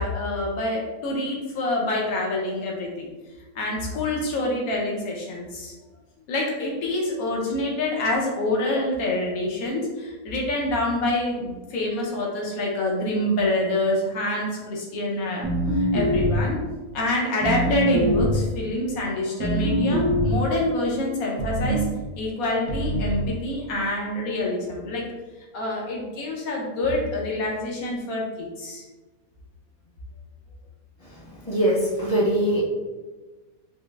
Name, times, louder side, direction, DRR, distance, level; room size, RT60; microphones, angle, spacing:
voice 1, 0.0-3.1 3.5-5.7 6.3-15.5 15.7-16.6 16.9-25.0 25.5-28.8, left 1 dB, 75° left, -2 dB, 1.2 m, -26 dB
sound 1, 15.4-16.6 17.4-18.5 19.4-20.5 21.4-22.0 22.7-23.3, equal, 75° right, 1.1 m, -23 dB
voice 2, 31.5-32.6, right 1 dB, 30° left, -7 dB, 0.8 m, -21 dB
4.8 x 2.0 x 2.3 m, 1.2 s
omnidirectional pair, 1.5 m